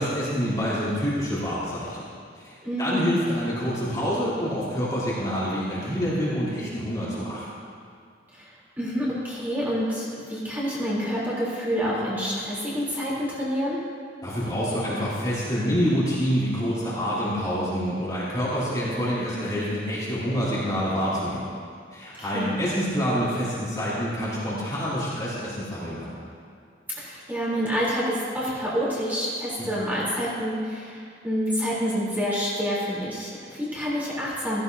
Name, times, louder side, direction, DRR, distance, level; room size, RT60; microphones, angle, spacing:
voice 1, 0.0-2.1 2.3-7.4 14.2-21.5 21.9-26.1 29.6-29.7, equal, 20° left, -10 dB, 3.2 m, -27 dB
voice 2, 2.6-3.1 8.3-8.5 8.8-13.8 22.2-22.5 27.0-34.6, equal, 10° right, -8 dB, 3.4 m, -28 dB
15.5 x 15.5 x 2.7 m, 2.3 s
head